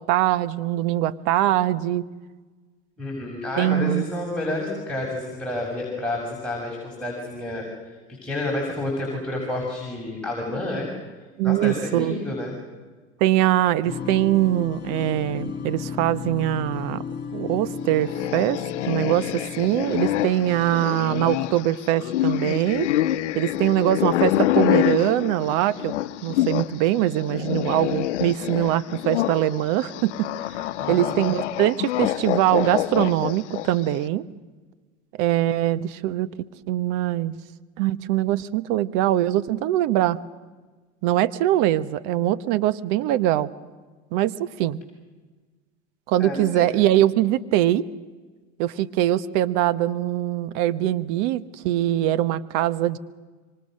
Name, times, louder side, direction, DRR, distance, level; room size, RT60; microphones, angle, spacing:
voice 1, 0.0-2.0 3.6-4.0 11.4-12.2 13.2-17.0 17.3-18.6 18.9-22.9 23.3-26.0 26.2-30.6 30.9-34.2 35.2-36.3 36.7-37.3 37.8-40.2 41.0-43.5 44.1-44.8 46.1-47.8 48.6-53.0, right 13 dB, 60° right, 16 dB, 1.1 m, -22 dB
voice 2, 3.0-7.7 8.1-10.9 11.4-12.6 30.8-31.2 46.2-46.7, left 1 dB, 5° left, -4 dB, 6.8 m, -29 dB
sound 1, 13.9-20.9, left 6 dB, 30° left, 3.3 m, -34 dB
sound 2, 18.0-26.7 27.0-33.8, left 14 dB, 80° left, 0.8 m, -26 dB
26.0 x 24.5 x 6.5 m, 1.4 s
hypercardioid pair, 90°, 34 cm